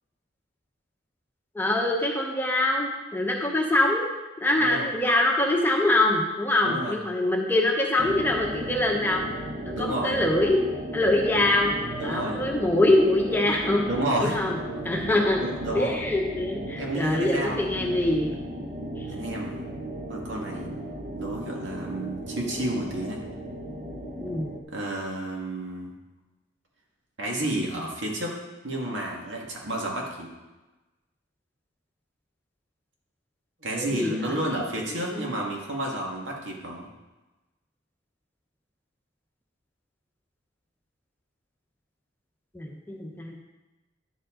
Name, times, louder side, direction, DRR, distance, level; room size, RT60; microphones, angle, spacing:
voice 1, 1.5-4.1 4.4-9.2 9.7-10.6 10.9-11.7 12.0-13.8 14.2-14.6 14.8-15.4 15.7-18.3 19.0-19.1 24.2-24.5 33.7-34.6 35.1-35.2 42.5-43.4, left 1 dB, 10° left, 0 dB, 1.0 m, -24 dB
voice 2, 4.6-4.9 6.6-7.0 9.7-10.2 12.0-12.4 13.9-14.4 15.4-16.0 16.8-18.0 19.0-19.6 20.1-20.7 21.1-23.2 24.7-25.9 27.2-28.4 28.6-30.3 33.6-36.9, right 1 dB, 75° right, -2 dB, 2.0 m, -31 dB
sound 1, 8.0-24.6, right 1 dB, 40° right, 0.9 m, -36 dB
11.0 x 7.6 x 3.8 m, 1.1 s
head